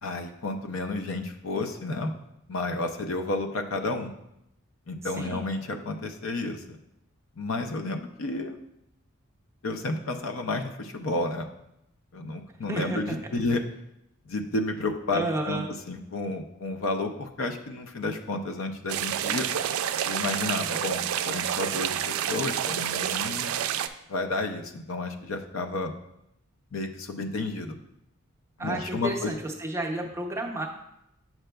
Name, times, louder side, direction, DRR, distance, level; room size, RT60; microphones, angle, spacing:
voice 1, 0.0-2.1 2.5-4.1 4.9-6.8 7.4-8.6 9.6-11.5 12.1-13.6 14.3-15.6 15.9-19.5 20.0-23.5 24.1-25.9 26.7-27.8 28.6-29.3, left 2 dB, 70° left, 5 dB, 0.6 m, -31 dB
voice 2, 5.0-5.4 12.7-13.2 15.1-15.7 28.6-30.7, right 1 dB, 15° right, 1 dB, 0.6 m, -31 dB
sound 1, 18.9-23.9, right 10 dB, 85° right, 0.3 m, -29 dB
7.6 x 5.9 x 2.2 m, 0.81 s
head